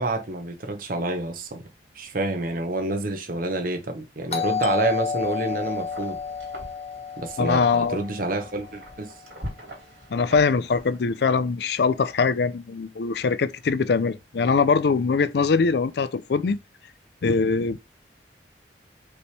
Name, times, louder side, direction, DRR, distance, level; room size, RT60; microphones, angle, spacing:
voice 1, 0.0-1.6 1.9-6.2 7.2-9.1, right 2 dB, 50° right, 0.8 m, -28 dB
Doorbell, 4.3-8.9, left 6 dB, 35° left, 1.1 m, -31 dB
Wind, 5.0-11.4, equal, 80° right, 2.5 m, -43 dB
voice 2, 7.4-8.0 10.1-16.6 17.2-17.8, left 4 dB, 65° left, 0.4 m, -22 dB
5.2 x 3.1 x 3.3 m
head